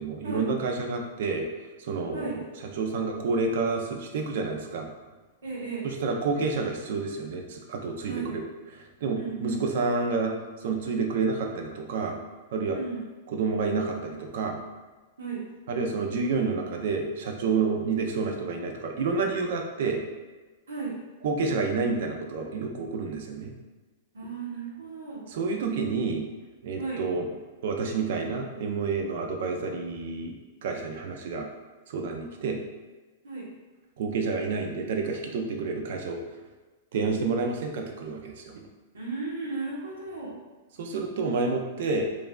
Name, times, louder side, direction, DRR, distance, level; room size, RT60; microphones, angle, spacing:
voice 1, 0.0-1.5 1.8-2.3 2.8-4.9 5.8-8.4 8.7-12.2 12.5-12.8 13.3-14.6 15.7-20.0 21.2-23.5 25.3-26.2 26.6-27.3 27.6-30.3 30.6-31.5 31.9-32.6 34.0-36.2 36.9-38.5 40.8-42.1, right 4 dB, 65° right, 3 dB, 0.4 m, -29 dB
voice 2, 5.4-5.9 8.1-8.3 9.1-9.6 12.7-13.0 15.2-15.4 20.7-20.9 24.1-25.2 26.8-27.0 33.2-33.5 38.9-40.3, right 4 dB, 85° right, -4 dB, 0.9 m, -35 dB
3.1 x 2.5 x 2.2 m, 1.3 s
hypercardioid pair, 120°, 0 cm